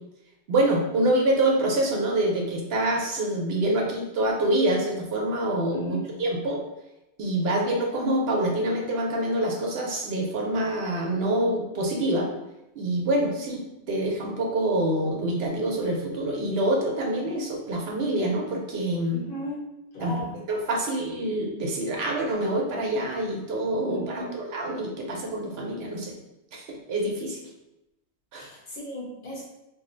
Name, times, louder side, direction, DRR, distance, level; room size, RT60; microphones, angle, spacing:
voice 1, 0.5-6.6 7.2-12.3 12.8-19.2 20.0-20.1 20.5-26.1 26.5-27.4 28.3-28.5, right 1 dB, 70° right, 0 dB, 0.8 m, -26 dB
voice 2, 5.7-6.0 19.1-19.6 19.9-20.4 23.8-24.4 28.4-29.4, equal, 50° left, -5 dB, 1.0 m, -36 dB
2.6 x 2.0 x 3.7 m, 0.92 s
omnidirectional pair, 1.2 m